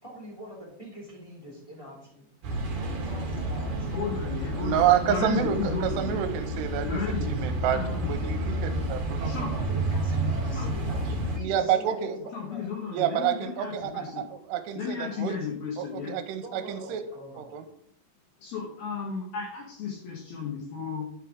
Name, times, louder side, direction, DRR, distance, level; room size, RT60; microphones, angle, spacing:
voice 1, 0.0-2.3 2.8-4.3 9.2-12.6 16.4-17.6, equal, 15° left, -4 dB, 1.4 m, -44 dB
sound 1, 2.4-11.4, right 1 dB, 50° right, 1.7 m, -30 dB
voice 2, 3.9-6.2 6.8-7.3 7.7-8.2 9.3-9.5 10.5-10.7 12.3-14.2 14.7-16.1 18.4-21.1, left 6 dB, 65° left, -2 dB, 2.9 m, -34 dB
voice 3, 4.5-9.3 11.4-12.2 12.9-15.4 15.8-17.0 17.4-17.6, right 10 dB, 80° right, 6 dB, 2.8 m, -28 dB
11.0 x 5.7 x 3.7 m, 0.68 s
omnidirectional pair, 5.2 m